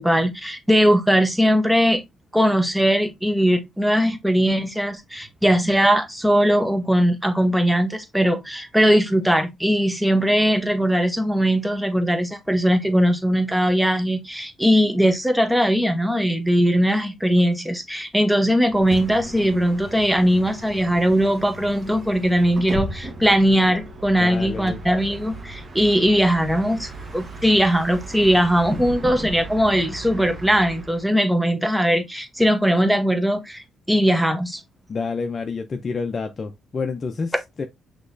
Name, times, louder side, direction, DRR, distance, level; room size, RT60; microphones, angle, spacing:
voice 1, 0.0-2.0 2.3-34.6, equal, 5° right, 1.0 m, -20 dB
Bus, 18.6-31.1, right 1 dB, 40° right, 1.3 m, -36 dB
voice 2, 24.2-24.8 34.9-37.7, left 4 dB, 40° left, 0.6 m, -29 dB
6.1 x 3.0 x 2.6 m
cardioid pair, 90°, 0 cm